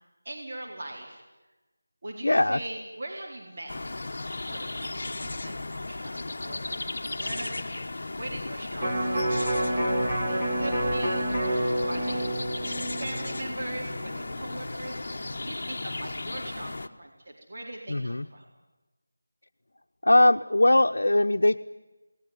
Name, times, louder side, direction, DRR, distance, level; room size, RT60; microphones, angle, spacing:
voice 1, 0.2-1.2 2.0-3.7 4.5-18.4, right 1 dB, 40° right, -1 dB, 4.1 m, -41 dB
voice 2, 2.2-2.6 17.9-18.3 20.0-21.6, left 1 dB, 75° left, 3 dB, 0.9 m, -21 dB
sound 1, 3.7-16.9, left 2 dB, 50° left, 1.2 m, -35 dB
Electric guitar, 8.8-15.0 15.4-15.5, right 1 dB, 10° right, 3.6 m, -29 dB
29.5 x 19.5 x 9.7 m, 1.2 s
figure-of-eight pair, 170°, 0 cm